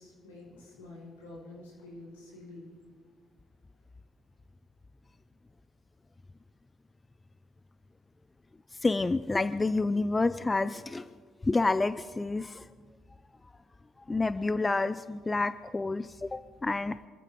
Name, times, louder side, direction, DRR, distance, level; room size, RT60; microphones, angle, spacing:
voice 1, 0.0-2.7, left 2 dB, 85° left, -4 dB, 5.6 m, -48 dB
voice 2, 8.8-11.1 11.5-12.6 14.1-17.1, left 3 dB, 20° left, 13 dB, 0.6 m, -29 dB
26.0 x 14.5 x 3.7 m, 1.5 s
hypercardioid pair, 50°, 0 cm